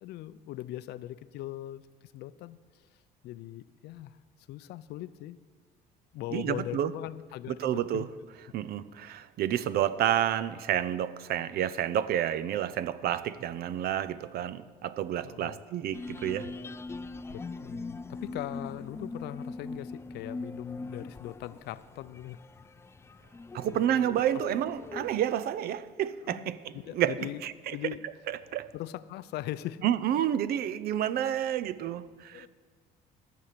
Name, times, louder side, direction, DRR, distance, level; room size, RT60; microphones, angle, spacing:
voice 1, 0.0-2.6 3.2-4.2 4.5-5.4 6.1-8.1 15.2-15.6 17.3-22.4 23.7-24.0 26.3-27.4 27.7-28.0 28.7-29.8 32.3-32.5, left 14 dB, 75° left, 0.5 m, -40 dB
voice 2, 6.3-6.9 7.6-8.1 8.5-16.5 23.5-27.8 28.3-28.7 29.8-32.5, right 11 dB, 65° right, 0.5 m, -30 dB
sound 1, 15.9-25.2, left 3 dB, 15° left, 0.3 m, -41 dB
14.0 x 7.1 x 6.6 m
cardioid pair, 110°, 17 cm